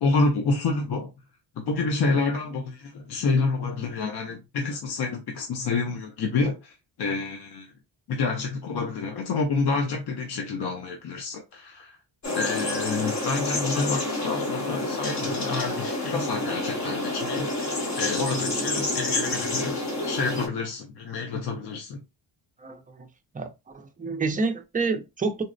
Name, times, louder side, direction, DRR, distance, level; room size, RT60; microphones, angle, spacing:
voice 1, 0.0-1.1 1.6-7.7 8.1-12.0 12.3-19.8 20.0-22.0, left 4 dB, 60° left, 0.6 m, -28 dB
sound 1, 12.2-20.5, left 2 dB, 40° left, 1.0 m, -28 dB
voice 2, 22.6-23.1 23.3-25.4, right 4 dB, 20° right, 0.4 m, -29 dB
3.9 x 2.0 x 2.5 m
wide cardioid pair, 135°, 44 cm